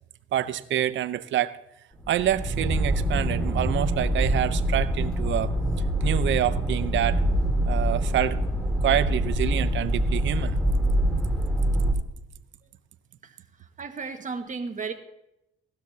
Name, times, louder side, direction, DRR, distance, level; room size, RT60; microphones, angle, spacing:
voice 1, 0.3-1.6 2.1-5.5 6.0-7.2 7.7-10.6, right 11 dB, 70° right, 14 dB, 0.8 m, -27 dB
sound 1, 2.0-11.9, right 1 dB, 5° left, 3.3 m, -25 dB
voice 2, 13.2-14.9, right 4 dB, 40° right, 5 dB, 1.7 m, -35 dB
17.5 x 13.0 x 2.8 m, 0.85 s
cardioid pair, 90°, 20 cm